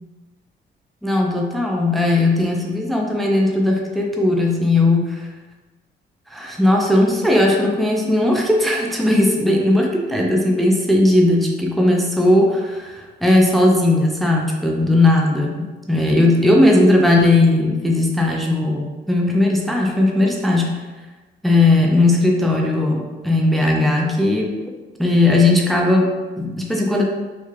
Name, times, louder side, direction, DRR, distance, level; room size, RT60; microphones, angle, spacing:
voice 1, 1.0-5.3 6.3-20.8 21.4-24.5 25.0-27.0, left 2 dB, ahead, 0 dB, 0.5 m, -17 dB
3.2 x 2.3 x 3.2 m, 1.2 s
cardioid pair, 90°, 20 cm